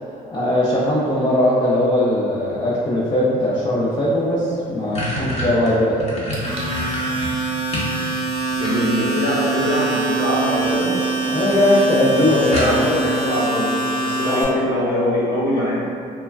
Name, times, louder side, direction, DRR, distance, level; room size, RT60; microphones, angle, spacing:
voice 1, 0.3-6.2 11.2-12.8 14.3-14.5, left 1 dB, 25° left, -8 dB, 0.5 m, -19 dB
sound 1, 4.1-4.2 4.5-8.0 8.3-9.2 10.3-10.7 11.1-11.2 11.5-11.6 11.9-12.0 12.5-13.1, left 1 dB, 40° left, 0.8 m, -28 dB
Domestic sounds home sounds, 6.3-14.4, right 3 dB, 35° right, 0.7 m, -24 dB
voice 2, 8.5-11.0 12.1-15.9, left 1 dB, 70° left, -7 dB, 0.9 m, -22 dB
3.2 x 2.2 x 2.3 m, 2.4 s
cardioid pair, 110°, 17 cm